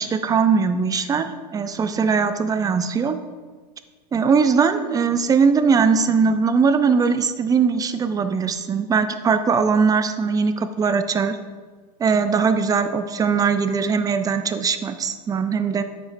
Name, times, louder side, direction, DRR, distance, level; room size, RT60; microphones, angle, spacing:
voice 1, 0.0-3.2 4.1-11.4 12.0-15.8, right 5 dB, 15° right, 10 dB, 0.4 m, -20 dB
9.2 x 6.6 x 2.6 m, 1.5 s
hypercardioid pair, 115°, 21 cm